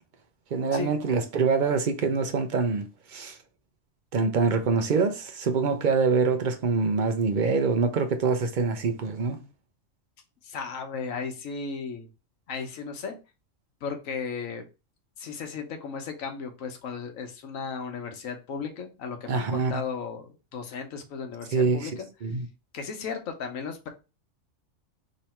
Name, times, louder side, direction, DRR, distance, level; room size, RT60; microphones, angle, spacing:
voice 1, 0.5-3.4 4.1-9.4 19.3-19.7 21.5-21.9 22.2-22.5, right 4 dB, 55° right, 0.6 m, -25 dB
voice 2, 10.4-12.1 12.5-13.2 13.8-14.6 15.2-22.1 22.7-23.9, left 5 dB, 85° left, 1.2 m, -35 dB
3.1 x 2.8 x 4.3 m
omnidirectional pair, 1.3 m